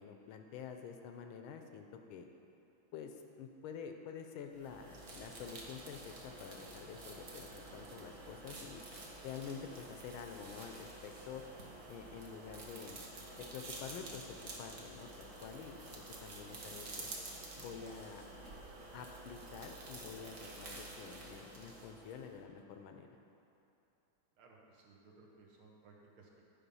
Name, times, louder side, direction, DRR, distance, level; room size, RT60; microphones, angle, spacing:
voice 1, 0.0-2.3 2.9-8.8 9.2-11.4 11.9-13.0 13.4-14.3 14.6-17.1 17.6-18.3 18.9-23.1, left 7 dB, 75° left, 5 dB, 1.4 m, -48 dB
sound 1, 4.5-22.3, right 2 dB, 45° right, 1.1 m, -50 dB
voice 2, 24.4-26.4, right 3 dB, 75° right, -1 dB, 2.0 m, -61 dB
10.0 x 5.2 x 5.4 m, 2.9 s
omnidirectional pair, 2.4 m